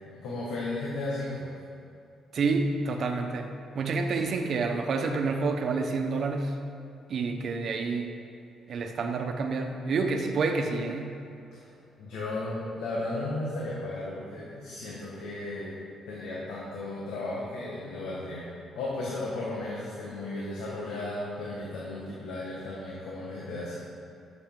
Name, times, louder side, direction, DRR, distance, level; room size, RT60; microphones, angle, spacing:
voice 1, 0.0-1.5 4.1-4.2 11.5-11.7 12.0-15.8 16.1-18.5 18.7-23.8, left 2 dB, 85° left, -6 dB, 1.6 m, -35 dB
voice 2, 2.3-3.5 3.7-6.6 7.1-8.2 8.7-11.1, right 4 dB, 60° right, 5 dB, 0.9 m, -28 dB
11.5 x 7.0 x 3.9 m, 2.6 s
cardioid pair, 90°, 0 cm